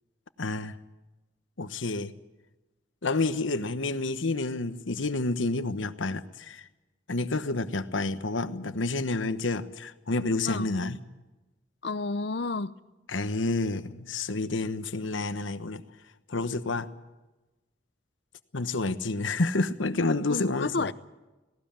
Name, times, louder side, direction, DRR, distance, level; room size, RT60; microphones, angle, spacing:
voice 1, 0.4-0.7 1.6-2.1 3.0-6.7 7.1-11.0 13.1-15.8 16.3-16.9 18.5-20.9, left 3 dB, 85° left, 1.1 m, -29 dB
voice 2, 10.5-10.8 11.8-12.7 20.3-20.9, left 3 dB, 60° left, 0.7 m, -31 dB
18.5 x 18.0 x 8.9 m
head